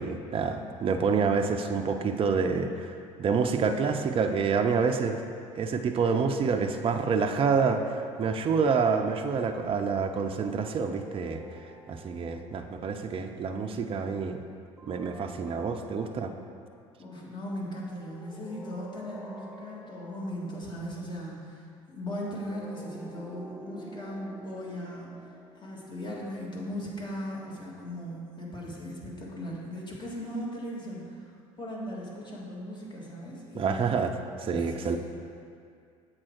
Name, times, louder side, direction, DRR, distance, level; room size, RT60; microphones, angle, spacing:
voice 1, 0.0-5.2 5.6-11.4 11.9-14.4 14.9-16.3 33.5-34.1 34.4-35.0, right 5 dB, 35° right, 6 dB, 0.5 m, -27 dB
sound 1, 10.6-13.1 14.8-16.6 18.0-20.7 22.1-26.6, right 1 dB, ahead, 0.9 m, -48 dB
voice 2, 17.0-25.2 25.6-31.3 31.6-34.1 34.5-35.0, equal, 25° left, -3 dB, 1.8 m, -38 dB
7.5 x 4.4 x 4.4 m, 2.3 s
hypercardioid pair, 65°, 17 cm